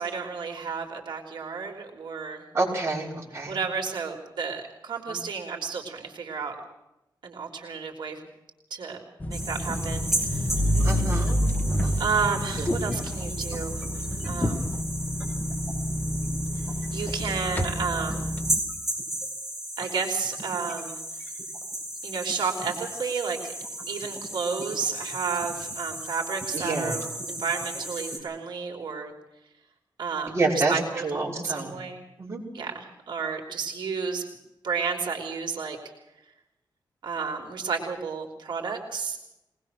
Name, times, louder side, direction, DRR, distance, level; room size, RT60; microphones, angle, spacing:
voice 1, 0.0-2.5 3.5-6.5 7.2-8.2 8.7-9.0 9.3-10.5 12.0-13.8 14.2-14.7 16.6-18.3 19.8-21.0 22.0-23.5 23.9-27.0 27.3-29.1 30.0-31.0 31.3-32.0 32.5-34.2 34.6-35.8 37.0-39.2, right 5 dB, 75° right, 2 dB, 3.4 m, -31 dB
voice 2, 2.5-3.6 10.8-11.4 11.7-12.0 12.6-12.7 26.5-26.9 30.3-30.7 31.0-31.7 32.2-32.4, right 3 dB, 35° right, -3 dB, 6.3 m, -28 dB
sound 1, 9.2-18.6, equal, 20° left, 1.7 m, -28 dB
sound 2, 9.3-28.2, right 1 dB, 5° right, 6.9 m, -35 dB
23.0 x 19.5 x 6.4 m, 0.91 s
wide cardioid pair, 160°, 8 cm